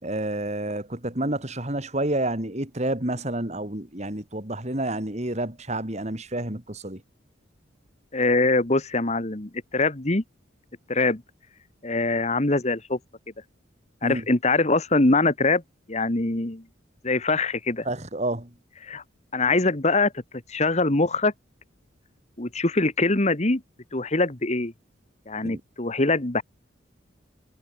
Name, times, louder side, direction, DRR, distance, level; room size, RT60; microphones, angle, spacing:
voice 1, 0.0-7.0 14.0-14.2 17.8-18.6 25.4-25.6, right 1 dB, 35° right, 3.0 m, -29 dB
voice 2, 8.1-10.2 10.9-11.2 11.8-13.0 14.0-15.6 15.9-16.6 17.0-17.9 18.8-19.0 19.3-20.1 20.5-21.3 22.4-23.6 23.9-24.7 25.3-26.4, left 2 dB, 35° left, 1.6 m, -23 dB
head